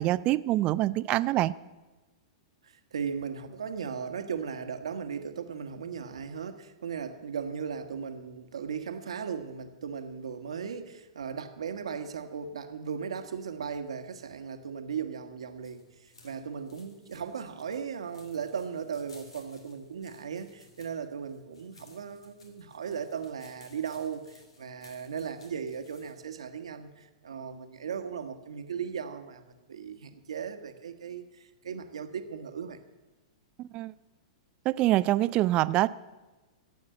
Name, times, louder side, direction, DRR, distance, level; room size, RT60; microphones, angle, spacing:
voice 1, 0.0-1.5 33.6-33.9 34.7-35.9, right 16 dB, 35° right, 17 dB, 0.5 m, -25 dB
voice 2, 2.6-32.8, right 6 dB, 80° right, 8 dB, 1.4 m, -37 dB
sound 1, 15.5-26.2, left 3 dB, 85° left, 3.0 m, -58 dB
14.5 x 8.7 x 7.7 m, 1.2 s
hypercardioid pair, 110°, 3 cm